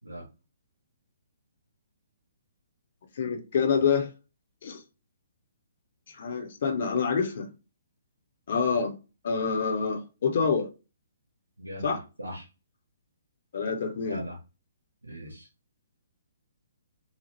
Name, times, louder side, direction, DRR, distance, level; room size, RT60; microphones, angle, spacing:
voice 1, 3.2-4.1 4.6-4.8 6.1-7.5 8.5-8.9 9.2-10.7 11.8-12.0 13.5-14.2, left 6 dB, 50° left, 0.6 m, -27 dB
voice 2, 11.6-12.5 14.1-14.4 15.1-15.5, equal, 80° right, 0.9 m, -39 dB
2.8 x 2.0 x 3.1 m
figure-of-eight pair, 125°, 0 cm